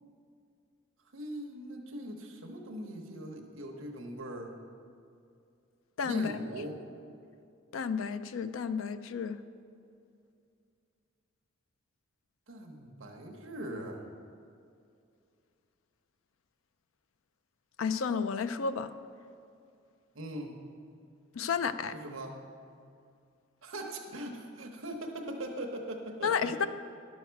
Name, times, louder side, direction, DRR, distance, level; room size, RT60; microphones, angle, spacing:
voice 1, 1.1-4.5 6.0-6.8 12.5-14.0 20.1-20.6 21.9-22.4 23.6-26.7, right 1 dB, 80° right, 1 dB, 0.9 m, -41 dB
voice 2, 6.0-6.3 7.7-9.4 17.8-18.9 21.3-21.9 26.2-26.7, left 6 dB, 75° left, 12 dB, 0.4 m, -31 dB
11.0 x 6.4 x 4.5 m, 2.4 s
head